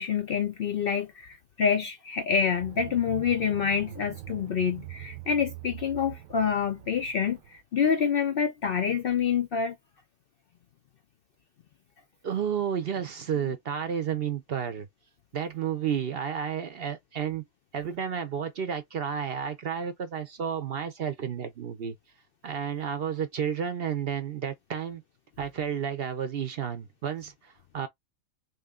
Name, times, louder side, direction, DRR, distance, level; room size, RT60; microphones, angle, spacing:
voice 1, 0.0-9.7, left 7 dB, 60° left, 0.6 m, -27 dB
sound 1, 2.6-7.6, right 15 dB, 80° right, 1.0 m, -43 dB
voice 2, 12.2-14.9 15.3-17.4 17.7-21.9 22.4-25.0 25.4-27.9, right 8 dB, 60° right, 0.7 m, -31 dB
3.0 x 2.7 x 3.6 m
omnidirectional pair, 1.4 m